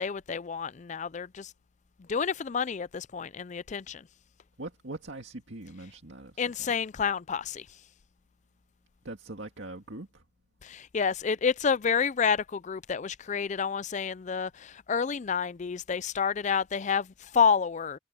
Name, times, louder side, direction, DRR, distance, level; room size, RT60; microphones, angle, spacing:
voice 1, 0.0-1.5 2.1-4.0 6.4-7.7 10.6-18.0, left 6 dB, 40° left, 0.4 m, -29 dB
voice 2, 4.6-6.7 9.0-10.2, right 2 dB, 70° right, 2.1 m, -42 dB
head